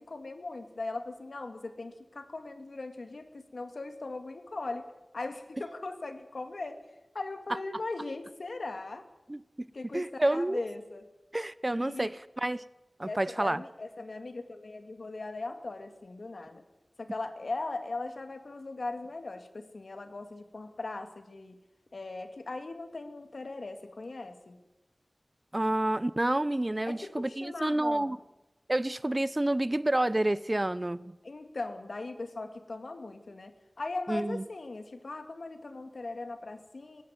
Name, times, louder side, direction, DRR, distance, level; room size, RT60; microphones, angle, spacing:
voice 1, 0.0-4.9 5.1-6.8 7.1-9.1 9.7-11.1 11.8-12.1 13.0-16.6 17.0-21.6 21.9-24.6 26.9-28.2 31.2-37.0, left 3 dB, 80° left, 8 dB, 2.2 m, -39 dB
voice 2, 9.9-10.6 11.3-12.6 13.0-13.6 25.5-28.2 28.7-31.1 34.1-34.4, right 1 dB, 30° right, 17 dB, 0.8 m, -29 dB
19.0 x 16.0 x 9.5 m, 0.99 s
wide cardioid pair, 55°, 0 cm